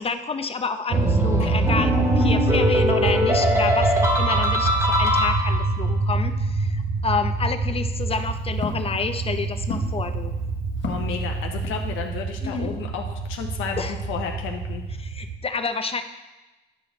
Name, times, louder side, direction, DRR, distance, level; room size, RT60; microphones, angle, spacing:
voice 1, 0.0-10.3 12.4-12.7 13.8-13.9 15.0-16.0, left 4 dB, 30° left, 8 dB, 0.7 m, -29 dB
sound 1, 0.9-5.8, left 1 dB, 15° right, 1.7 m, -23 dB
sound 2, 0.9-15.4, right 3 dB, 55° right, 0.9 m, -26 dB
Walk footsteps, 7.8-12.3, left 5 dB, 65° left, 1.2 m, -37 dB
voice 2, 10.9-14.8, left 6 dB, 90° left, 2 dB, 0.8 m, -32 dB
10.5 x 5.0 x 3.9 m, 1.1 s
cardioid pair, 90°, 20 cm